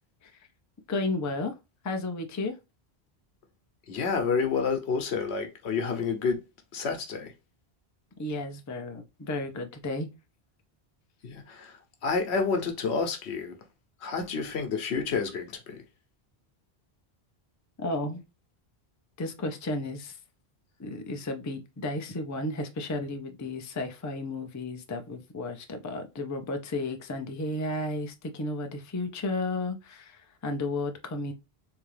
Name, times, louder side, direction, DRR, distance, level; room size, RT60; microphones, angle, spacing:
voice 1, 0.9-1.5 1.8-2.5 8.2-10.1 17.8-18.2 19.2-20.2 20.8-31.3, left 2 dB, 30° left, 0.3 m, -33 dB
voice 2, 3.9-6.4 6.7-7.3 11.2-13.6 14.0-15.8, left 5 dB, 85° left, 1.1 m, -29 dB
3.5 x 2.8 x 3.2 m
omnidirectional pair, 1.1 m